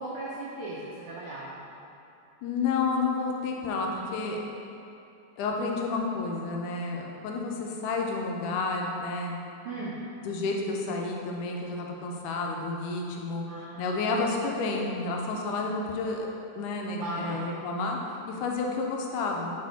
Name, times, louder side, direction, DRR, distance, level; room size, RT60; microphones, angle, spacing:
voice 1, 0.0-1.6 9.6-10.0 13.5-13.9 17.0-17.4, right 2 dB, 90° right, -6 dB, 1.2 m, -37 dB
voice 2, 2.4-4.4 5.4-9.3 10.3-13.4 13.8-16.3 16.6-18.0 18.3-19.5, left 3 dB, 85° left, 0 dB, 2.1 m, -30 dB
6.3 x 4.8 x 4.1 m, 2.8 s
omnidirectional pair, 3.5 m